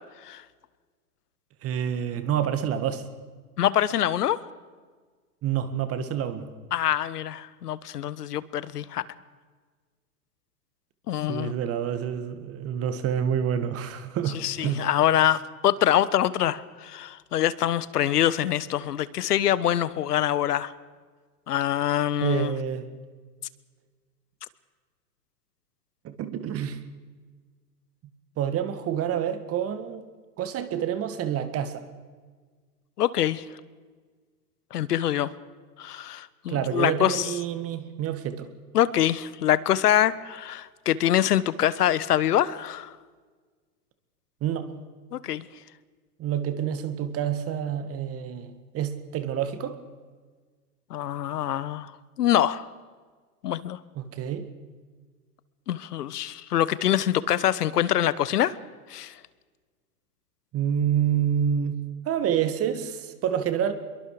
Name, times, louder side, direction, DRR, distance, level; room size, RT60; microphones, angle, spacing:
voice 1, 1.6-3.0 5.4-6.5 11.3-14.9 22.2-22.9 26.0-26.8 28.4-30.0 30.4-31.8 36.5-38.5 44.4-44.7 46.2-49.8 54.0-54.5 60.5-61.8 62.1-63.7, right 9 dB, 30° right, 10 dB, 2.0 m, -28 dB
voice 2, 3.6-4.4 6.7-9.0 11.1-11.5 14.3-20.7 21.5-22.5 33.0-33.4 34.7-35.3 35.8-37.3 38.7-42.9 45.1-45.4 50.9-51.9 52.2-52.7 53.4-53.8 55.7-58.5 58.9-59.1, left 11 dB, 70° left, 18 dB, 1.3 m, -24 dB
25.0 x 23.0 x 5.0 m, 1.5 s
hypercardioid pair, 115°, 48 cm